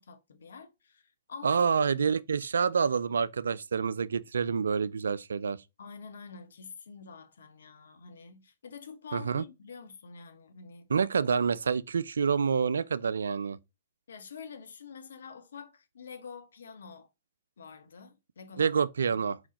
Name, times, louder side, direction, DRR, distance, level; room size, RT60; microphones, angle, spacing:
voice 1, 0.0-1.9 5.8-10.9 14.1-17.1 17.6-18.8, left 5 dB, 70° left, 1.0 m, -47 dB
voice 2, 1.4-5.6 9.1-9.4 10.9-13.6 18.6-19.4, right 6 dB, 75° right, 0.3 m, -27 dB
4.7 x 3.9 x 2.9 m
hypercardioid pair, 120°, 0 cm